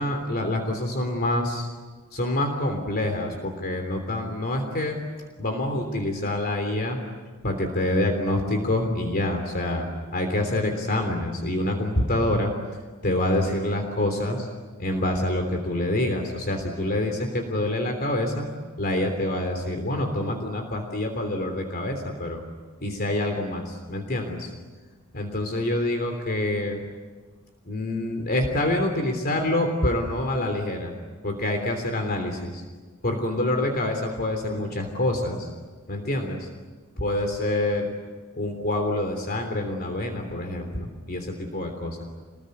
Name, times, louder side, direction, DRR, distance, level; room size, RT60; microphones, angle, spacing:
voice 1, 0.0-1.7 2.1-5.0 5.4-7.0 7.4-9.9 10.1-12.5 13.0-14.5 14.8-18.5 18.8-22.4 22.8-24.5 25.1-26.8 27.7-30.9 31.2-32.6 33.0-35.5 35.9-36.5 37.0-37.9 38.4-42.0, left 1 dB, 45° left, 4 dB, 3.3 m, -26 dB
28.0 x 21.0 x 9.7 m, 1.4 s
head